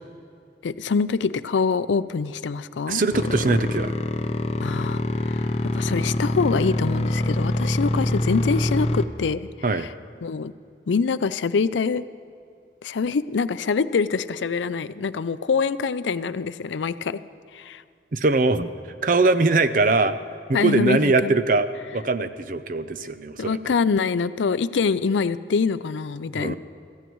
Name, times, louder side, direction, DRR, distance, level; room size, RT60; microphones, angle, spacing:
voice 1, 0.6-3.0 4.6-9.9 10.2-10.5 10.9-12.0 12.8-17.2 17.5-17.8 20.5-21.3 23.4-26.6, left 5 dB, 90° left, 14 dB, 0.4 m, -25 dB
voice 2, 2.9-4.0 9.6-9.9 18.1-18.7 19.0-20.2 20.5-21.7 21.9-23.6 26.3-26.6, right 3 dB, 50° right, 11 dB, 0.5 m, -21 dB
sound 1, 3.1-9.0, left 1 dB, 35° left, 0.6 m, -25 dB
25.5 x 14.5 x 3.1 m, 2.3 s
head